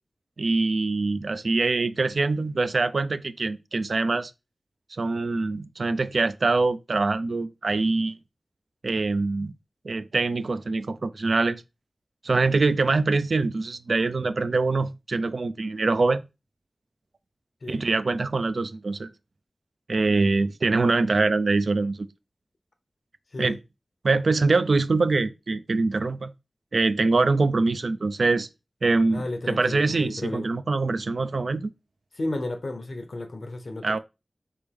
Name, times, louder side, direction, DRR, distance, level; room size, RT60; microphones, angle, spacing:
voice 1, 0.4-4.3 5.0-8.2 8.8-9.5 9.8-11.6 12.2-16.3 17.7-19.1 19.9-22.1 23.4-23.6 24.0-26.3 26.7-28.5 28.8-31.7 33.8-34.0, right 3 dB, 80° right, 0.3 m, -24 dB
voice 2, 29.1-30.5 32.2-34.0, left 2 dB, 70° left, 0.7 m, -33 dB
4.3 x 3.4 x 3.4 m
wide cardioid pair, 70°, 0 cm